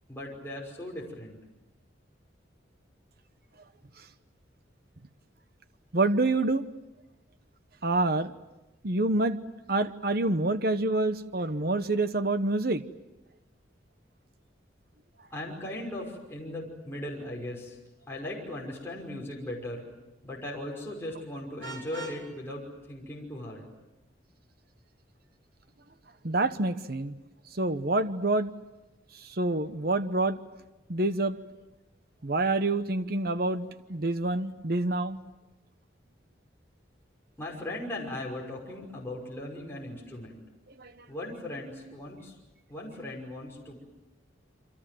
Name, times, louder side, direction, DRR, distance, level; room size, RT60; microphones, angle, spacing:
voice 1, 0.1-1.4 15.3-17.8 18.1-19.9 20.2-23.7 37.4-40.4 41.1-42.3 42.7-43.9, left 1 dB, 15° left, -3 dB, 5.7 m, -38 dB
voice 2, 5.9-6.6 7.8-8.3 8.8-9.4 9.7-12.8 26.2-27.1 27.6-28.5 29.4-30.4 30.9-31.4 32.2-35.2 40.8-40.9, right 2 dB, 50° right, 11 dB, 1.1 m, -27 dB
Vehicle horn car horn honking, 21.6-22.2, right 3 dB, 70° right, 5.2 m, -41 dB
28.5 x 25.5 x 7.8 m, 1.0 s
head